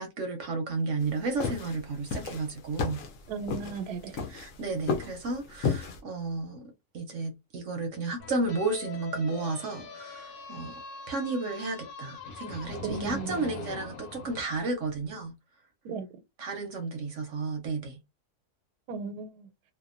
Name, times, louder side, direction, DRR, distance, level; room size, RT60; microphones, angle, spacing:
voice 1, 0.0-3.0 4.3-10.7 11.1-15.3 16.4-18.0, right 3 dB, 65° right, 0.8 m, -33 dB
sound 1, 1.0-6.0, left 5 dB, 65° left, 0.9 m, -33 dB
voice 2, 3.3-4.2 12.8-13.4 15.8-16.1 18.9-19.5, right 5 dB, 90° right, 1.2 m, -36 dB
sound 2, 8.2-14.4, left 4 dB, 85° left, 1.2 m, -42 dB
2.7 x 2.1 x 2.4 m
omnidirectional pair, 1.6 m